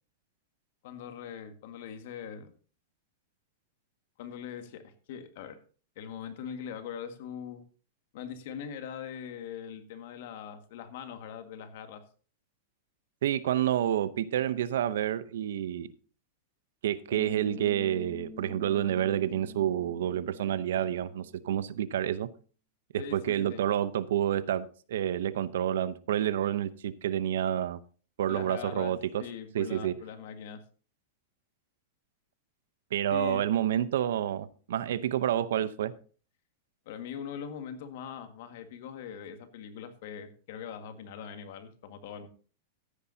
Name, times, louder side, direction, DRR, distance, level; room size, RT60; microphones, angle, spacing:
voice 1, 0.8-2.5 4.2-5.6 5.9-7.6 8.1-12.0 23.0-23.6 28.3-28.9 29.2-30.6 33.1-33.5 36.8-42.3, left 8 dB, 60° left, 8 dB, 1.8 m, -41 dB
voice 2, 13.2-15.9 16.8-22.3 22.9-27.8 28.2-29.2 29.5-29.9 32.9-35.9, right 11 dB, 80° right, 16 dB, 0.8 m, -29 dB
Bass guitar, 17.1-21.5, left 1 dB, ahead, 1.5 m, -46 dB
14.0 x 10.0 x 2.8 m, 0.39 s
supercardioid pair, 135°, 0 cm